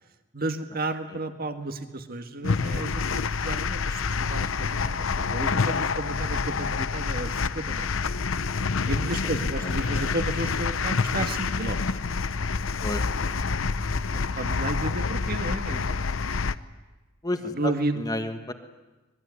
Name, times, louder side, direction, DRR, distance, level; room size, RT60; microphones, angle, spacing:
voice 1, 0.3-7.9 8.8-12.0 14.3-16.0 17.5-18.0, right 2 dB, 50° right, 7 dB, 1.9 m, -32 dB
sound 1, 2.4-16.5, left 4 dB, 80° left, 0.8 m, -27 dB
voice 2, 17.2-18.5, left 1 dB, 20° left, 7 dB, 1.6 m, -31 dB
25.0 x 21.0 x 9.7 m, 1.2 s
head